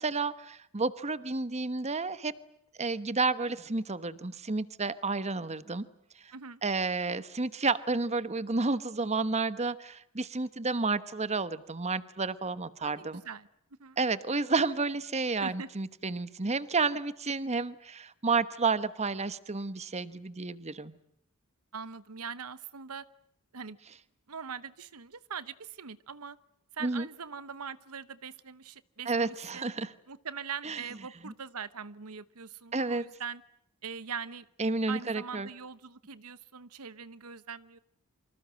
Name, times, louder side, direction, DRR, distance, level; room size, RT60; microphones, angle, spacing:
voice 1, 0.0-2.3 2.8-5.8 6.6-13.2 14.0-21.0 26.8-27.1 29.1-29.9 30.6-30.8 31.2-31.3 32.7-33.0 34.6-35.5, right 3 dB, 30° right, 14 dB, 1.1 m, -31 dB
voice 2, 12.8-13.5 13.8-14.0 15.3-15.7 21.7-23.0 23.5-23.8 24.3-26.4 26.7-29.7 30.1-33.4 33.8-34.5 34.9-37.8, right 6 dB, 80° right, 16 dB, 1.0 m, -42 dB
28.0 x 25.5 x 7.7 m, 0.74 s
head